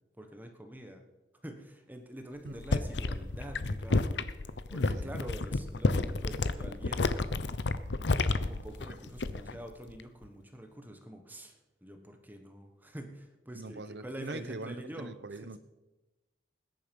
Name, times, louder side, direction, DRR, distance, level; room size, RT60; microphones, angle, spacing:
voice 1, 0.2-1.0 1.4-4.3 4.7-7.1 8.4-11.6 11.8-15.6, right 1 dB, 10° right, 1.3 m, -46 dB
sound 1, 2.5-9.6 9.9-10.3, left 3 dB, 90° left, 0.8 m, -31 dB
voice 2, 13.5-15.6, right 2 dB, 75° right, 0.8 m, -42 dB
19.5 x 10.5 x 5.4 m
head